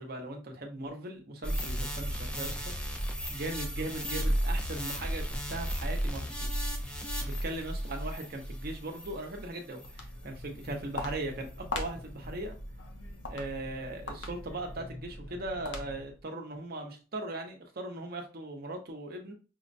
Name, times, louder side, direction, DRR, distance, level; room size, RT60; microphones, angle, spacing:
voice 1, 0.0-2.7 3.3-6.5 7.2-12.5 13.3-19.3, right 2 dB, 50° right, 3 dB, 0.8 m, -39 dB
sound 1, 1.4-10.1 10.6-10.7, equal, 5° left, 0.4 m, -34 dB
Walk footsteps, 9.8-16.2, left 2 dB, 65° left, 0.7 m, -41 dB
5.6 x 2.1 x 2.6 m, 0.34 s
head